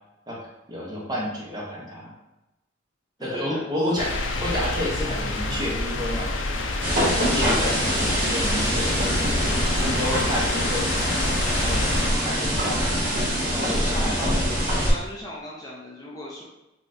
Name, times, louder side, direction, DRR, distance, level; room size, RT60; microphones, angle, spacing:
voice 1, 0.7-2.1 3.2-4.1 4.4-6.3 6.9-9.1 9.8-11.9 12.2-12.8 13.4-14.3, left 1 dB, 20° right, -3 dB, 0.7 m, -30 dB
voice 2, 3.3-3.6 13.4-14.4 14.8-16.4, equal, 20° left, -5 dB, 0.4 m, -36 dB
sound 1, 4.0-12.1, left 2 dB, 75° left, 0.4 m, -28 dB
sound 2, 6.8-14.9, equal, 50° right, 1.1 m, -24 dB
4.0 x 2.3 x 2.5 m, 0.96 s
head